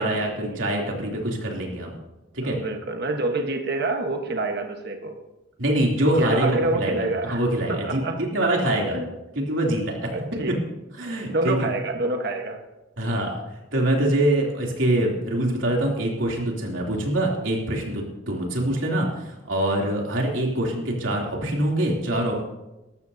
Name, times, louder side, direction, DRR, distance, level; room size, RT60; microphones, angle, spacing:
voice 1, 0.0-1.9 2.3-2.6 5.6-9.0 9.3-10.1 11.0-11.7 13.0-13.3 13.7-22.4, right 1 dB, 90° right, -1 dB, 3.0 m, -24 dB
voice 2, 2.4-5.1 6.2-7.4 7.7-8.2 8.9-9.1 10.1-10.6 11.2-12.6, right 2 dB, 55° right, 4 dB, 1.3 m, -27 dB
19.0 x 13.5 x 2.8 m, 1.0 s
head